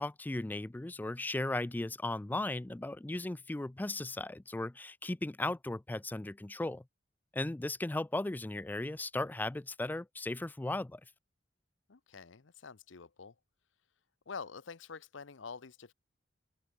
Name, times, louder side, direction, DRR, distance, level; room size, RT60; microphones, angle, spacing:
voice 1, 0.0-6.8 7.3-11.0, left 2 dB, 10° left, 0.3 m, -36 dB
voice 2, 11.9-13.3 14.3-15.9, left 5 dB, 85° left, 0.8 m, -47 dB
open air
head